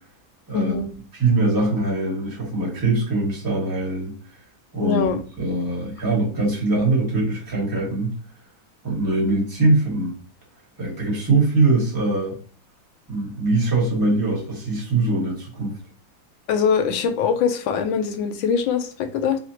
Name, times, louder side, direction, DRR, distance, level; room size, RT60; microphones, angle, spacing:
voice 1, 0.5-0.9 4.8-5.2 16.5-19.4, left 6 dB, 75° left, 7 dB, 1.3 m, -22 dB
voice 2, 1.2-4.1 4.7-5.0 5.4-8.1 8.8-10.1 10.8-12.4 13.1-15.8, right 2 dB, 10° right, -4 dB, 1.3 m, -22 dB
4.2 x 2.4 x 2.9 m, 0.41 s
omnidirectional pair, 2.3 m